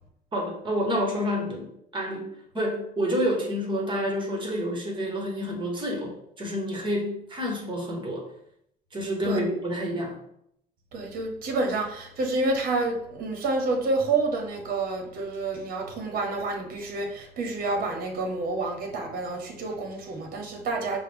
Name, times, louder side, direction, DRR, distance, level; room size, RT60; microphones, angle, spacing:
voice 1, 0.3-8.2 8.9-10.2, equal, 30° right, 0 dB, 1.3 m, -29 dB
voice 2, 10.9-21.0, right 3 dB, 55° right, 2 dB, 1.0 m, -28 dB
5.7 x 2.2 x 3.5 m, 0.73 s
cardioid pair, 110°, 17 cm